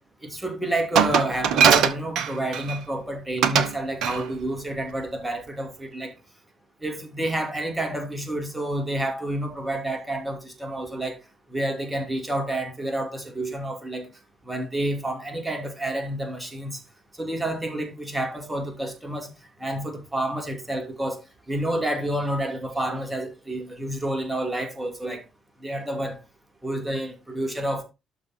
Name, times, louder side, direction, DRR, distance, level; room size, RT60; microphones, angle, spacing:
voice 1, 0.2-6.1 6.8-11.2 11.5-14.1 14.4-16.8 17.2-19.3 19.6-21.2 21.5-25.2 25.6-26.2 26.6-27.8, right 1 dB, 10° right, 2.5 m, -29 dB
Glass, 1.0-2.8 3.4-3.7 4.0-4.3, right 7 dB, 55° right, 0.8 m, -20 dB
12.0 x 4.0 x 4.2 m
figure-of-eight pair, 45°, 0 cm